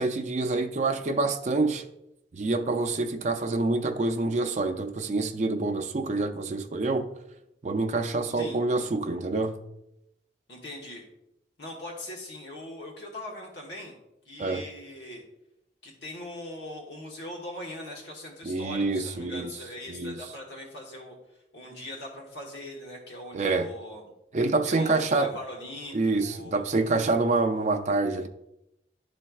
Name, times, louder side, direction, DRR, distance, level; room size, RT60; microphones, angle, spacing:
voice 1, 0.0-1.8 2.3-7.1 7.6-9.6 14.4-14.6 18.5-19.5 19.9-20.2 23.3-23.7 24.3-25.3 25.9-28.3, right 3 dB, 40° right, 0.4 m, -27 dB
voice 2, 10.5-11.0 11.6-13.9 14.2-15.2 15.8-21.2 21.5-24.0 24.6-26.7, left 1 dB, 85° left, 1.3 m, -41 dB
11.5 x 4.2 x 2.3 m
head